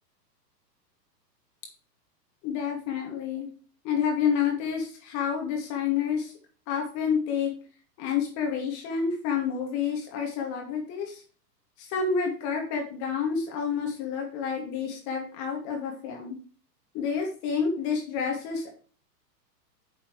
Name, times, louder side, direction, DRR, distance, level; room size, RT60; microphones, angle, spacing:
voice 1, 2.4-3.5 3.8-6.3 6.7-7.5 8.0-11.2 11.8-16.4 16.9-18.7, left 6 dB, 35° left, 2 dB, 2.5 m, -29 dB
10.0 x 6.8 x 3.3 m, 0.40 s
figure-of-eight pair, 110°, 50 cm